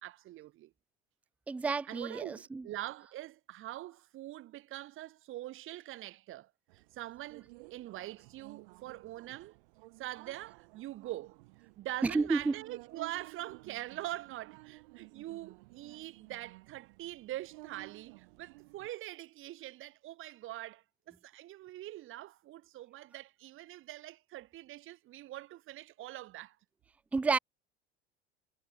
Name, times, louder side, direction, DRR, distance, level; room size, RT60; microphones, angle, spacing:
voice 1, 0.0-0.7 1.9-9.6 10.0-26.6, right 15 dB, 40° right, 1.7 m, -44 dB
voice 2, 1.5-2.7 12.0-12.5 27.1-27.4, right 4 dB, 5° right, 0.4 m, -30 dB
sound 1, 6.7-18.9, right 26 dB, 60° right, 2.1 m, -55 dB
figure-of-eight pair, 70°, 31 cm